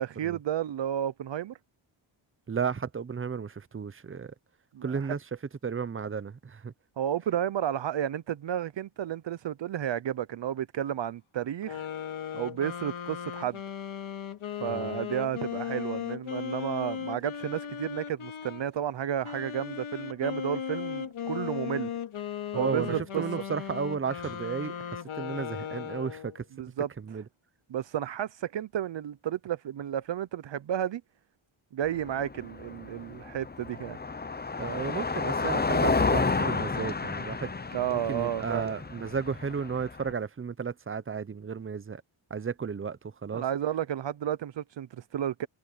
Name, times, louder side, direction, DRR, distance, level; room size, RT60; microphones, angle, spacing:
voice 1, 0.0-1.6 4.7-4.9 7.0-11.9 12.3-13.6 14.6-21.9 22.5-23.2 26.6-26.9 27.7-31.0 31.7-34.0 37.7-38.7 43.3-45.5, right 10 dB, 60° right, 0.7 m, -32 dB
voice 2, 2.5-4.3 4.8-5.2 5.6-6.7 14.6-15.0 22.5-26.5 27.0-27.2 34.6-42.0 42.3-43.4, right 6 dB, 25° right, 0.7 m, -34 dB
sound 1, 11.6-18.7 19.2-26.4, left 8 dB, 75° left, 2.8 m, -37 dB
Guitar, 24.2-27.3 27.8-27.9, left 5 dB, 35° left, 6.4 m, -59 dB
Car passing by, 31.8-40.1, left 4 dB, 20° left, 0.9 m, -31 dB
wide cardioid pair, 105°, 49 cm